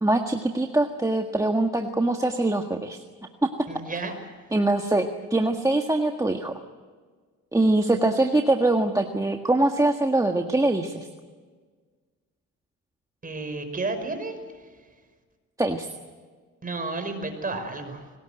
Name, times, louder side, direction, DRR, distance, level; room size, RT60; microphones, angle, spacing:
voice 1, 0.0-3.0 3.4-3.5 4.5-6.5 7.5-11.1 15.6-15.9, right 2 dB, 10° right, 4 dB, 1.7 m, -23 dB
voice 2, 3.7-4.1 13.2-14.4 16.6-18.0, right 3 dB, 30° right, 6 dB, 5.4 m, -31 dB
24.5 x 19.5 x 9.2 m, 1.5 s
cardioid pair, 90°, 30 cm